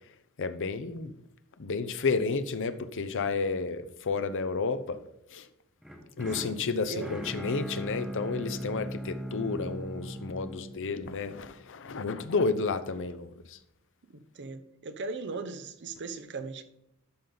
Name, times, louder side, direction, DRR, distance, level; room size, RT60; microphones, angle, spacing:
voice 1, 0.4-1.1 1.6-5.0 5.3-5.5 6.2-13.6, left 4 dB, 60° left, 0.7 m, -31 dB
sound 1, 5.8-11.9, equal, ahead, 1.4 m, -39 dB
voice 2, 6.3-7.2 14.1-16.6, right 4 dB, 55° right, 0.8 m, -39 dB
12.0 x 5.2 x 4.0 m
head